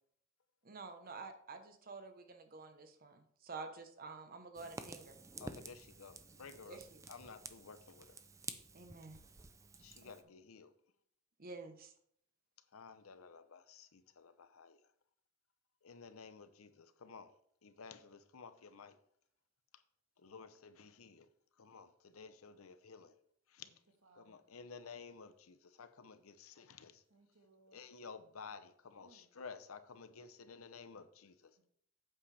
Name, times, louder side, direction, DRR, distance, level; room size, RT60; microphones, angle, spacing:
voice 1, 0.6-5.2 6.7-7.1 8.7-9.2 10.0-10.1 11.4-11.9, right 4 dB, 45° right, 1.0 m, -50 dB
Fire, 4.5-10.2, right 3 dB, 15° right, 0.5 m, -51 dB
voice 2, 5.4-6.8 7.1-8.1 9.8-10.7 12.7-14.8 15.8-17.3 17.6-18.9 20.2-21.3 21.6-23.1 23.5-23.7 24.2-27.0 27.7-31.5, left 5 dB, 90° left, 0.7 m, -53 dB
voice 3, 23.6-24.4 27.1-27.9 29.0-29.3 31.5-31.7, right 2 dB, 85° right, 1.6 m, -68 dB
8.6 x 7.6 x 3.4 m
head